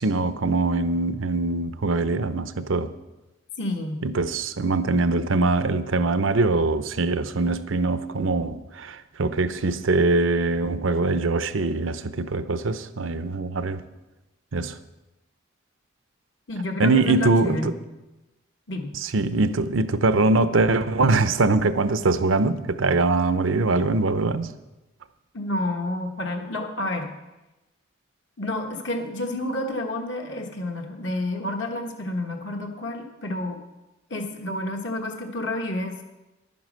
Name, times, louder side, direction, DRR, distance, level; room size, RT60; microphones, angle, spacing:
voice 1, 0.0-2.9 4.0-13.8 14.5-14.8 16.8-17.7 18.9-24.5, right 3 dB, 75° right, 0.7 m, -23 dB
voice 2, 3.6-4.0 16.5-17.8 18.7-18.9 25.3-27.1 28.4-33.6 34.1-36.0, left 1 dB, 65° left, 1.4 m, -30 dB
11.0 x 9.5 x 6.3 m
head